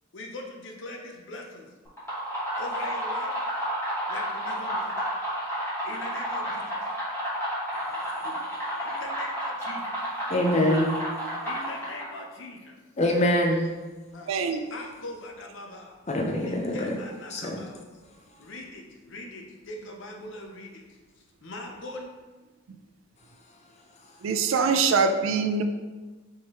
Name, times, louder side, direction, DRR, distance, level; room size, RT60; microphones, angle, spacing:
voice 1, 0.1-1.7 2.6-3.5 4.1-5.1 5.8-6.9 8.8-10.0 11.4-12.8 14.1-16.0 16.4-17.8 18.4-22.1, left 2 dB, 70° left, 1 dB, 0.7 m, -41 dB
sound 1, 1.9-12.2, equal, 15° left, 1.3 m, -31 dB
voice 2, 10.3-10.9 13.0-13.7 16.1-17.0 17.3-17.6, left 1 dB, 35° left, 1 dB, 0.5 m, -24 dB
voice 3, 14.3-14.6 24.2-25.6, right 5 dB, 85° right, 7 dB, 0.4 m, -23 dB
4.5 x 3.3 x 3.0 m, 1.2 s
head